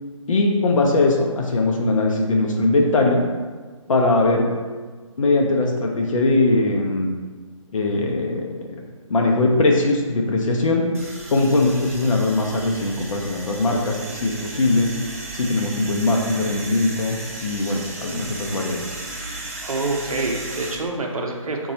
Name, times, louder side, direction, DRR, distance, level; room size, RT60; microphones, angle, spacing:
voice 1, 0.3-3.2 3.9-4.5 5.2-7.1 7.7-8.5 9.1-10.8 11.3-14.9 15.3-19.0, left 2 dB, 70° left, 0 dB, 0.5 m, -20 dB
sound 1, 10.9-20.8, right 2 dB, 25° right, 0.4 m, -35 dB
voice 2, 19.6-21.7, right 2 dB, 85° right, 1 dB, 0.5 m, -26 dB
3.9 x 2.3 x 2.7 m, 1.4 s
hypercardioid pair, 165°, 18 cm